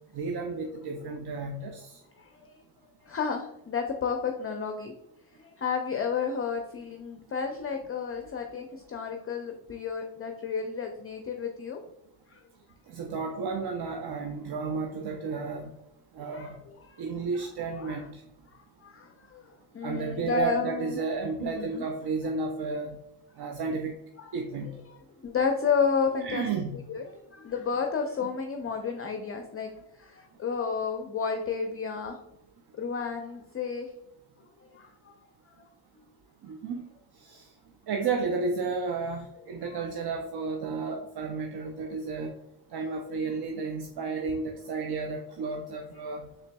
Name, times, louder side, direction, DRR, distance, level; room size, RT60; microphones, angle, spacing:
voice 1, 0.1-1.9 12.9-15.7 16.2-16.6 17.0-18.2 19.8-23.0 23.4-23.9 24.3-24.8 26.2-26.8 36.4-36.8 37.3-37.4 37.9-42.3 42.7-46.3, right 4 dB, 55° right, 3 dB, 0.6 m, -32 dB
voice 2, 2.2-2.5 3.0-4.9 5.4-11.8 12.3-12.4 16.3-16.5 16.9-17.0 17.4-17.5 17.7-18.0 18.8-21.0 21.4-21.8 24.2-24.3 24.9-26.5 26.9-32.2 32.8-33.9 34.6-35.1 39.6-39.8 42.8-43.2, left 5 dB, 30° left, 4 dB, 0.5 m, -32 dB
3.8 x 3.4 x 2.2 m, 0.83 s
supercardioid pair, 50°, 48 cm